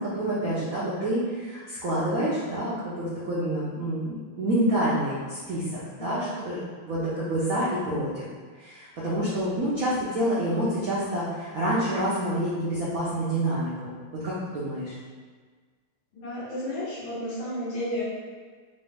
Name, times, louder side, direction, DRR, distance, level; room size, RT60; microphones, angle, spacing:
voice 1, 0.0-5.6 6.0-6.6 6.8-8.3 8.6-13.9 14.2-14.9, right 1 dB, 75° right, -9 dB, 0.8 m, -27 dB
voice 2, 16.1-18.0, left 1 dB, 65° left, -7 dB, 1.7 m, -32 dB
4.1 x 2.3 x 3.3 m, 1.5 s
omnidirectional pair, 2.4 m